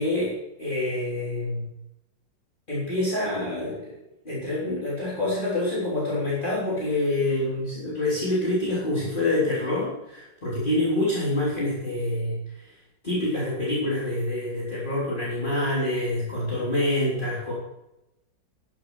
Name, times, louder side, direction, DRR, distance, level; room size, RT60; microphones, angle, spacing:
voice 1, 0.0-1.7 2.7-3.9 4.2-12.8 13.0-17.5, left 1 dB, 25° left, -7 dB, 4.1 m, -26 dB
12.0 x 11.0 x 6.3 m, 0.90 s
omnidirectional pair, 2.0 m